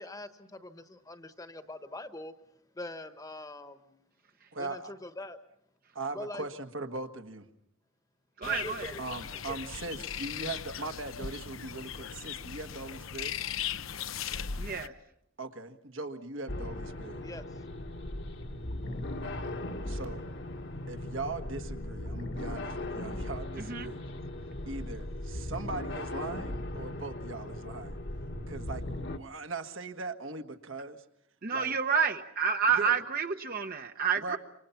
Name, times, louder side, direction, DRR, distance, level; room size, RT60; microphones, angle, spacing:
voice 1, 0.0-2.3 2.7-4.0 4.6-5.4 6.1-6.5 8.4-9.6 17.2-17.6, left 1 dB, 20° left, 9 dB, 1.2 m, -43 dB
voice 2, 4.5-4.9 5.9-7.5 9.0-13.3 15.4-17.3 19.8-20.2 20.9-24.0 24.7-28.0 28.5-31.0 31.5-31.7 32.7-33.0 34.2-34.4, right 3 dB, 70° right, 6 dB, 1.7 m, -40 dB
sound 1, 8.4-14.9, left 8 dB, 90° left, 0.8 m, -38 dB
voice 3, 8.4-8.9 14.6-14.9 23.7-23.9 31.4-34.4, right 6 dB, 45° right, 6 dB, 1.0 m, -29 dB
sound 2, 16.5-29.2, left 1 dB, 60° left, 1.6 m, -38 dB
28.0 x 25.0 x 5.8 m, 0.74 s
head